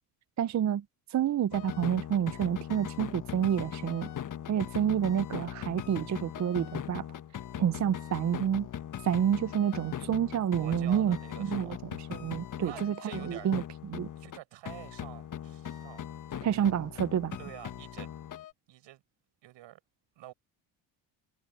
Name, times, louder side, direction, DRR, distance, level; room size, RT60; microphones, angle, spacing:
voice 1, 0.4-0.8 1.1-4.1 4.5-7.1 7.6-8.7 9.0-11.8 12.1-13.6 13.9-14.1 16.4-17.4, right 9 dB, 40° right, 0.7 m, -29 dB
sound 1, 1.5-14.4 14.7-18.5, left 10 dB, 45° left, 1.2 m, -40 dB
voice 2, 10.6-11.8 12.6-13.5 14.2-16.0 16.5-16.7 17.4-18.1 18.7-19.0 19.4-19.8 20.2-20.3, right 15 dB, 75° right, 7.1 m, -48 dB
supercardioid pair, 85°, 45 cm